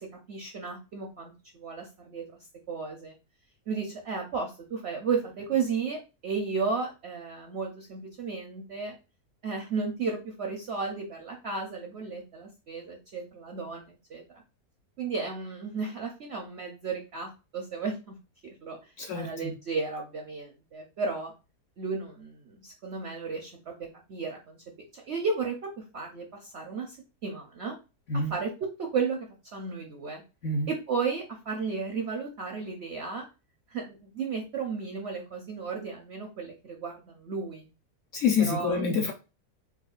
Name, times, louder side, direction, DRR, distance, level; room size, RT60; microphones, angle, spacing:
voice 1, 0.0-2.2 2.7-3.1 3.7-8.9 9.4-14.2 15.0-18.2 18.4-18.8 19.2-21.3 21.8-24.6 24.9-27.0 27.2-27.8 28.3-30.2 30.7-33.2 33.7-37.7 38.5-38.8, right 5 dB, 65° right, 0.7 m, -34 dB
voice 2, 19.0-19.5 28.1-28.4 30.4-30.7 38.1-39.1, left 4 dB, 65° left, 0.8 m, -27 dB
4.4 x 2.3 x 2.4 m
omnidirectional pair, 1.7 m